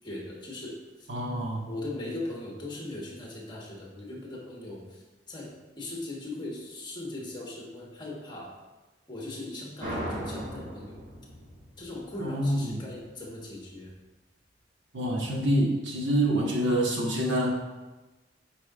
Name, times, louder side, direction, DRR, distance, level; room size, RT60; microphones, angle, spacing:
voice 1, 0.0-1.1 1.7-8.6 9.1-11.0 11.8-13.9, left 2 dB, 25° left, -2 dB, 1.3 m, -39 dB
voice 2, 1.1-1.7 12.2-12.8 14.9-17.6, right 1 dB, 70° right, -2 dB, 1.2 m, -26 dB
sound 1, 9.8-13.1, equal, 40° right, 2.0 m, -38 dB
8.2 x 4.8 x 2.5 m, 1.1 s
head